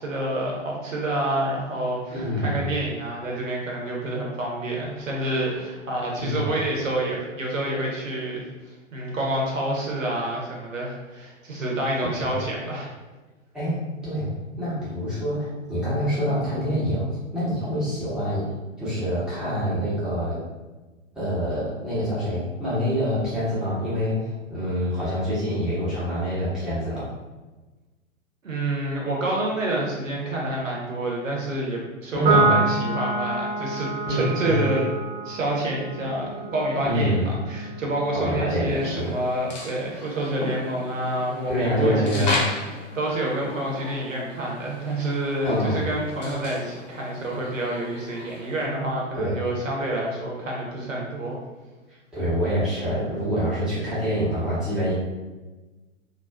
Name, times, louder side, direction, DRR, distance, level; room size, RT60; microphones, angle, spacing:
voice 1, 0.0-12.9 28.4-34.9 35.2-42.4 42.9-51.4, right 1 dB, 75° right, -2 dB, 0.8 m, -28 dB
voice 2, 2.1-2.7 6.2-6.5 12.2-12.3 13.5-14.3 14.6-18.5 18.8-20.4 21.1-27.1 32.1-32.6 34.0-34.7 36.8-37.3 38.1-39.1 41.5-42.4 45.4-45.9 49.1-49.4 52.1-54.9, equal, ahead, -12 dB, 0.7 m, -26 dB
Piano, 32.2-38.9, right 3 dB, 40° right, 0.7 m, -28 dB
sound 1, 38.7-48.7, left 2 dB, 35° left, 0.4 m, -35 dB
2.4 x 2.3 x 2.2 m, 1.2 s
figure-of-eight pair, 110°, 39 cm